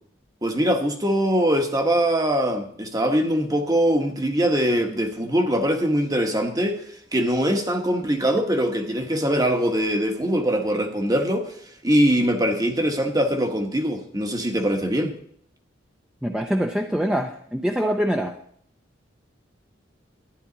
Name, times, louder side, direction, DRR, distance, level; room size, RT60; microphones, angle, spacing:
voice 1, 0.4-6.8 7.1-11.5 11.8-15.1, equal, 20° right, 5 dB, 1.3 m, -22 dB
voice 2, 16.2-18.3, equal, 5° right, 3 dB, 0.6 m, -24 dB
12.5 x 10.5 x 4.0 m, 0.64 s
head